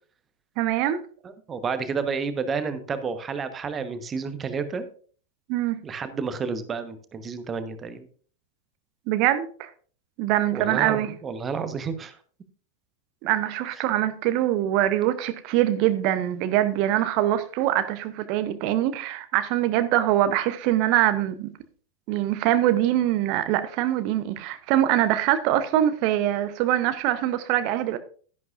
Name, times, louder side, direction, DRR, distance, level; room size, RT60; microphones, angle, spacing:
voice 1, 0.6-1.0 5.5-5.8 9.1-9.7 10.2-11.1 13.2-21.5 22.1-28.0, right 13 dB, 45° right, 0.7 m, -23 dB
voice 2, 1.2-4.9 5.8-8.1 10.5-12.2, right 5 dB, 20° right, 1.1 m, -30 dB
12.0 x 10.5 x 2.5 m
figure-of-eight pair, 90°, 0 cm